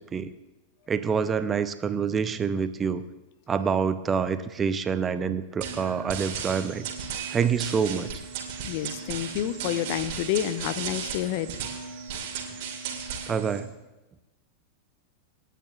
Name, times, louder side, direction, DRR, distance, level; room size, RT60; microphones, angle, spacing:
voice 1, 0.9-3.0 3.5-6.9 7.3-8.1 13.3-13.7, right 6 dB, 20° right, 12 dB, 0.6 m, -26 dB
sound 1, 5.6-13.6, right 6 dB, 50° right, 2.3 m, -35 dB
voice 2, 8.7-11.6, left 11 dB, 45° left, 14 dB, 0.6 m, -29 dB
27.5 x 9.2 x 2.4 m, 1.1 s
figure-of-eight pair, 90°, 0 cm